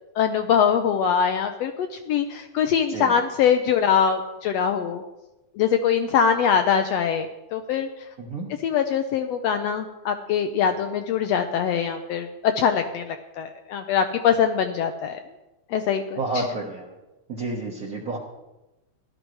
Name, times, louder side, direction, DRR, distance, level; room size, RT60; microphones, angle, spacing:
voice 1, 0.2-1.7 2.1-5.0 5.6-7.9 8.6-15.2 15.7-16.5, left 7 dB, 80° left, 6 dB, 1.5 m, -23 dB
voice 2, 16.2-16.9 17.3-18.2, right 2 dB, 55° right, -4 dB, 1.0 m, -30 dB
16.0 x 11.5 x 3.2 m, 1.0 s
omnidirectional pair, 3.5 m